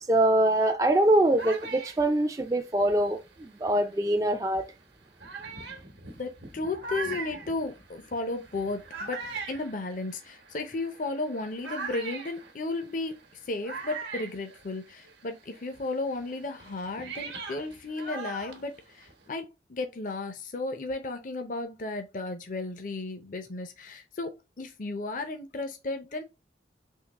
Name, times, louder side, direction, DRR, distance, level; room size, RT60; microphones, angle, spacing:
voice 1, 0.1-4.7, right 1 dB, 20° right, 0.4 m, -24 dB
sound 1, 0.9-3.9 4.6-4.7 5.2-15.2 15.5-19.3, right 4 dB, 75° right, 1.0 m, -41 dB
voice 2, 6.2-13.2 13.5-26.2, left 2 dB, 50° left, 0.6 m, -34 dB
3.7 x 2.9 x 2.9 m
head